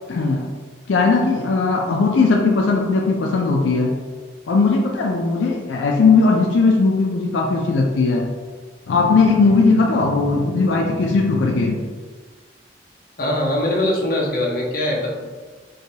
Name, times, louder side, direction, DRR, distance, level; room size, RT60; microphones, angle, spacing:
voice 1, 0.1-0.5 0.9-3.9 4.5-8.3 8.9-11.8, left 4 dB, 85° left, 0 dB, 0.4 m, -18 dB
voice 2, 13.2-15.3, left 1 dB, 50° left, -3 dB, 0.8 m, -22 dB
4.7 x 2.2 x 2.7 m, 1.4 s
head